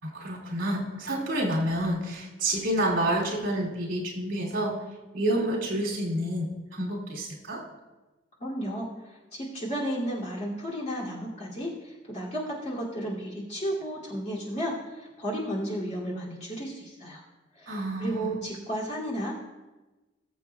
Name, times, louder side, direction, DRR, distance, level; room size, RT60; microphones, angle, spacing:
voice 1, 0.0-4.7 5.1-7.6 17.7-18.3, right 1 dB, 70° right, -3 dB, 2.9 m, -29 dB
voice 2, 8.4-17.2 17.5-19.4, equal, 35° left, -6 dB, 2.8 m, -33 dB
20.0 x 7.5 x 2.4 m, 1.1 s
head